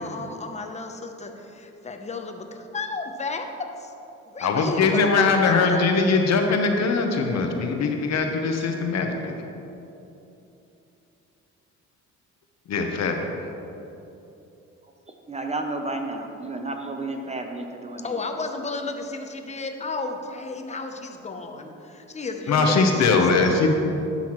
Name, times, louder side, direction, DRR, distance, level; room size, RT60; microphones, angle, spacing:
voice 1, 0.0-3.9 4.3-5.9 18.0-23.2, left 3 dB, 25° left, 4 dB, 0.7 m, -33 dB
voice 2, 4.4-9.3 12.7-13.3 22.5-23.8, left 4 dB, 60° left, 3 dB, 0.9 m, -21 dB
voice 3, 14.8-18.2, right 2 dB, 20° right, 4 dB, 0.6 m, -32 dB
11.5 x 5.7 x 3.1 m, 2.9 s
cardioid pair, 90°, 30 cm